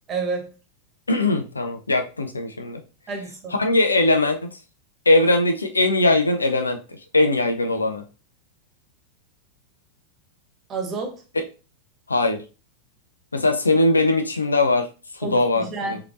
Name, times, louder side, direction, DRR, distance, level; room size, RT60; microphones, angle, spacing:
voice 1, 0.1-0.5 3.1-3.5 10.7-11.1 15.2-16.0, right 4 dB, 25° right, 3 dB, 1.3 m, -29 dB
voice 2, 1.1-2.8 3.5-4.6 5.1-8.0 11.3-11.5 12.1-12.4 13.3-14.9 15.1-16.0, left 2 dB, 80° left, 6 dB, 0.5 m, -20 dB
4.9 x 2.8 x 2.5 m, 0.33 s
figure-of-eight pair, 90°, 0 cm